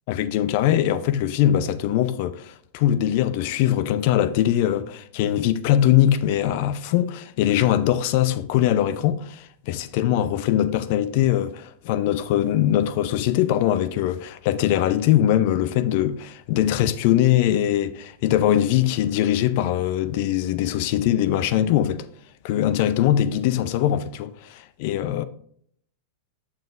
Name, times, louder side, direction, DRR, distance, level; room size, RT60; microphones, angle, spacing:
voice 1, 0.1-22.0 22.4-25.2, left 11 dB, 55° left, 0.6 m, -22 dB
7.6 x 7.1 x 2.5 m
hypercardioid pair, 100°, 0 cm